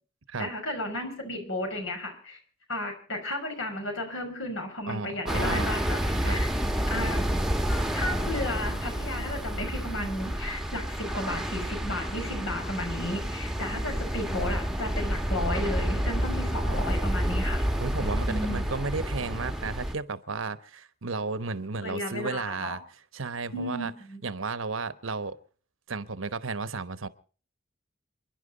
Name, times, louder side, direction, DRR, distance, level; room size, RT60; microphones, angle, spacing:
voice 1, 0.4-2.4 2.7-6.5 6.9-7.3 7.7-17.7 18.3-18.7 21.8-22.8 23.5-24.2, left 1 dB, 80° left, 5.7 m, -34 dB
voice 2, 4.9-5.7 6.1-6.4 17.8-22.8 23.1-23.9 24.2-25.4 25.9-27.1, right 4 dB, 85° right, 1.1 m, -33 dB
sound 1, 5.3-19.9, equal, ahead, 1.1 m, -29 dB
28.5 x 11.0 x 4.0 m
head